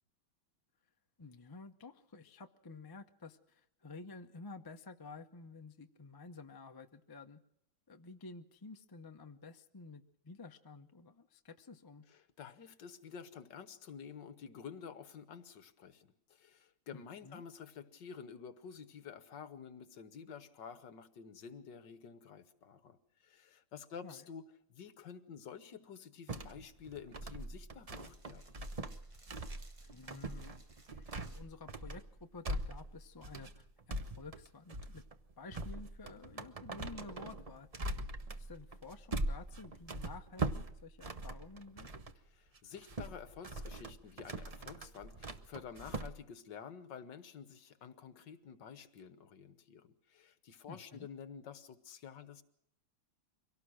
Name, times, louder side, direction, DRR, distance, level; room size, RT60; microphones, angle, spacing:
voice 1, 1.2-7.4 7.9-12.1 16.9-17.4 24.0-24.3 29.8-30.6 30.9-35.0 35.4-37.7 38.4-41.9 50.7-51.1, left 3 dB, 25° left, 6 dB, 0.5 m, -52 dB
voice 2, 12.1-28.4 42.3-52.4, left 7 dB, 65° left, 12 dB, 1.8 m, -50 dB
sound 1, 26.3-42.2 42.6-46.1, right 2 dB, 70° right, 0.3 m, -42 dB
sound 2, 26.8-32.8, equal, 20° right, 0.9 m, -60 dB
24.0 x 17.5 x 6.4 m, 0.74 s
omnidirectional pair, 2.1 m